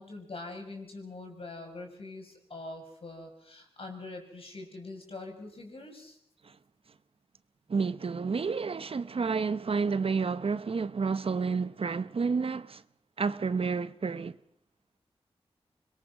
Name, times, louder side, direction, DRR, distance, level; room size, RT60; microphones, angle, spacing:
voice 1, 0.0-6.2, left 2 dB, 65° left, 6.4 m, -43 dB
voice 2, 7.7-12.8 13.2-14.4, right 5 dB, 65° right, 0.9 m, -30 dB
24.5 x 22.0 x 6.1 m
cardioid pair, 50°, 11 cm